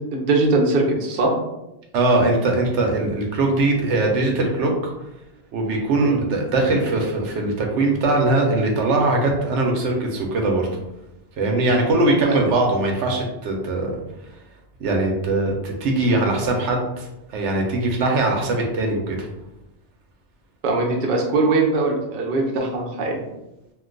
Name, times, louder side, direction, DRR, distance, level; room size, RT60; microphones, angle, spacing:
voice 1, 0.1-1.3 6.0-6.2 12.2-12.4 20.6-23.2, right 3 dB, 55° right, 0 dB, 0.7 m, -21 dB
voice 2, 1.9-4.9 5.5-10.7 11.4-13.9 14.8-19.3, right 2 dB, 85° right, 1 dB, 1.0 m, -21 dB
2.5 x 2.2 x 3.7 m, 0.92 s
omnidirectional pair, 1.2 m